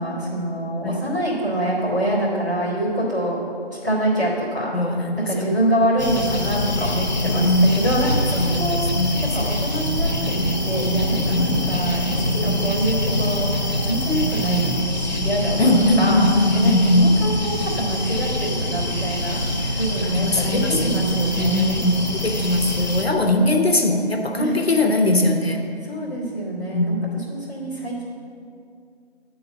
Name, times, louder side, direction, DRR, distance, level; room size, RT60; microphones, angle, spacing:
voice 1, 0.0-3.4 3.7-4.7 5.2-8.9 9.3-16.2 16.5-19.4 19.8-21.8 23.2-23.7 24.4-24.7 25.9-28.0, right 1 dB, 15° right, -13 dB, 1.6 m, -25 dB
voice 2, 4.7-5.5 7.2-7.8 8.4-9.5 11.3-11.5 15.6-17.2 19.6-19.8 20.0-20.9 21.3-25.6 26.7-27.0, left 1 dB, 65° left, 3 dB, 1.0 m, -20 dB
sound 1, 6.0-23.1, equal, 40° left, 0.8 m, -24 dB
9.8 x 3.9 x 7.0 m, 2.4 s
figure-of-eight pair, 180°, 33 cm